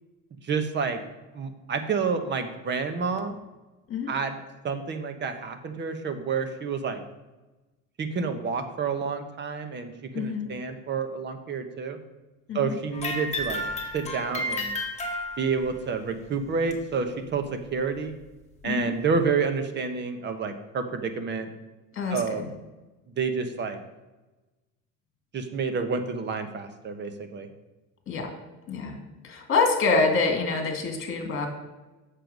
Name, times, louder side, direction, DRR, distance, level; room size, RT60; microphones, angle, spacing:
voice 1, 0.4-1.0 1.3-3.4 4.1-7.0 8.0-12.0 12.5-13.6 13.9-14.7 15.4-18.1 18.6-21.5 22.1-22.5 23.2-23.8 25.3-27.5, right 5 dB, 35° right, 7 dB, 1.0 m, -29 dB
voice 2, 10.1-10.5 12.5-12.8 18.6-18.9 22.0-22.5 28.1-28.3 28.7-29.0 29.2-31.5, left 4 dB, 40° left, 4 dB, 2.1 m, -26 dB
sound 1, 12.9-15.7 16.7-16.8 17.6-17.7 18.6-18.7, left 1 dB, 20° left, 1.6 m, -32 dB
7.7 x 6.7 x 5.2 m, 1.1 s
cardioid pair, 145°, 33 cm